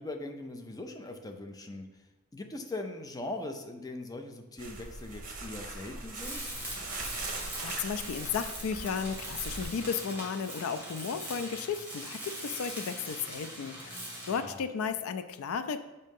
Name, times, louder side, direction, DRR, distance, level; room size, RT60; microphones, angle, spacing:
voice 1, 0.0-1.9 2.3-6.6 14.4-14.6, left 2 dB, 15° left, 4 dB, 0.5 m, -40 dB
sound 1, 4.6-9.6, right 2 dB, 40° right, 0.8 m, -41 dB
Tools, 6.1-14.5, right 1 dB, 10° right, 1.8 m, -41 dB
voice 2, 7.1-15.8, left 6 dB, 75° left, 10 dB, 0.4 m, -34 dB
7.4 x 2.8 x 5.3 m, 1.1 s
head